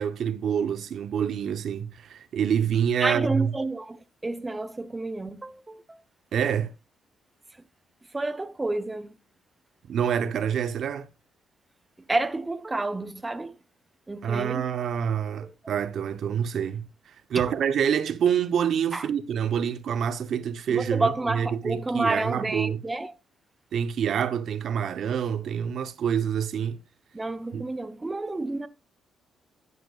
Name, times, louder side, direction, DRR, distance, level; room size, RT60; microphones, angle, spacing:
voice 1, 0.0-3.5 6.3-6.7 9.9-11.1 14.2-22.8 23.7-26.8 27.5-27.6, right 8 dB, 65° right, 0.8 m, -27 dB
voice 2, 3.0-6.0 8.1-9.1 12.1-13.6 14.1-14.7 15.4-15.5 18.9-19.1 20.7-23.1 27.1-28.7, right 2 dB, 20° right, 0.7 m, -30 dB
11.0 x 10.5 x 2.4 m
cardioid pair, 90°, 0 cm